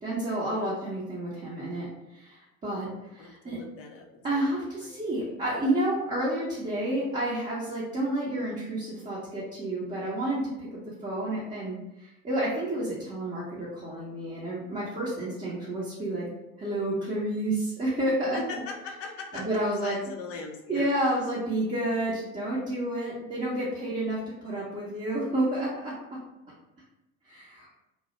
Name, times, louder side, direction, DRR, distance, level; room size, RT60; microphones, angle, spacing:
voice 1, 0.0-3.6 4.2-16.3 16.6-18.6 19.3-20.0 20.7-26.2 27.3-27.8, right 1 dB, 15° right, -7 dB, 0.6 m, -30 dB
voice 2, 3.2-4.3 4.8-5.2 18.3-19.4 19.8-20.9, left 4 dB, 35° left, 1 dB, 0.4 m, -40 dB
2.3 x 2.0 x 2.8 m, 0.93 s
figure-of-eight pair, 60°, 44 cm